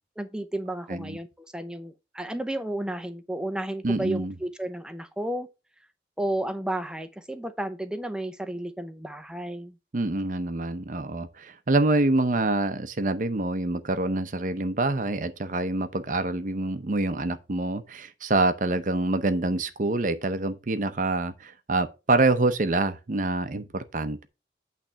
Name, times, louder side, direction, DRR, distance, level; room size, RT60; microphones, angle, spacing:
voice 1, 0.2-5.5 6.2-9.8, right 1 dB, 5° right, 0.6 m, -32 dB
voice 2, 3.8-4.3 9.9-24.3, right 2 dB, 45° right, 0.7 m, -26 dB
8.8 x 3.3 x 6.6 m
head